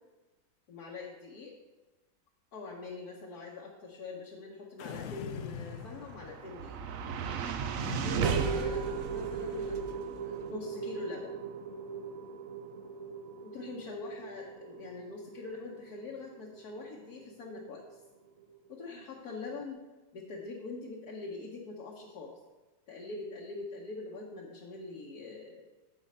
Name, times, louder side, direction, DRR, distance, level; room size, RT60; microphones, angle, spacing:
voice 1, 0.7-1.5 2.5-6.8 8.0-11.3 13.4-18.0 18.7-19.8 20.1-22.4 22.9-25.6, left 3 dB, 60° left, -2 dB, 1.4 m, -43 dB
sound 1, 4.8-6.7 7.8-9.6, left 7 dB, 80° left, 0.7 m, -43 dB
sound 2, 5.6-18.0, right 6 dB, 65° right, 0.9 m, -37 dB
7.3 x 7.1 x 5.5 m, 1.2 s
omnidirectional pair, 1.9 m